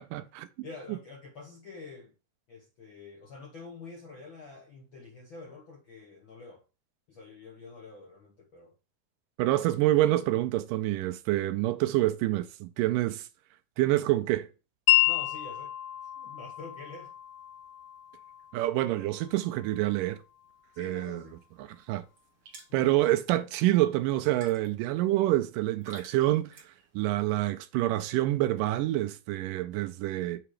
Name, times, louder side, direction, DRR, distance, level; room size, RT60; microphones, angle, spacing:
voice 1, 0.0-0.5 9.4-13.3 13.8-14.5 18.5-20.2 20.8-21.2 21.6-22.0 22.7-26.5 26.9-30.4, right 15 dB, 85° right, 2.2 m, -27 dB
voice 2, 0.6-2.1 2.5-6.6 7.1-8.7 9.4-9.6 15.0-15.7 16.2-17.1 20.7-21.4 22.7-22.9, left 3 dB, 65° left, 1.2 m, -47 dB
Wind chime, 14.9-21.0, left 18 dB, 80° left, 2.4 m, -31 dB
sound 1, 21.2-27.0, right 3 dB, 50° right, 2.2 m, -55 dB
6.7 x 3.0 x 4.8 m
omnidirectional pair, 3.9 m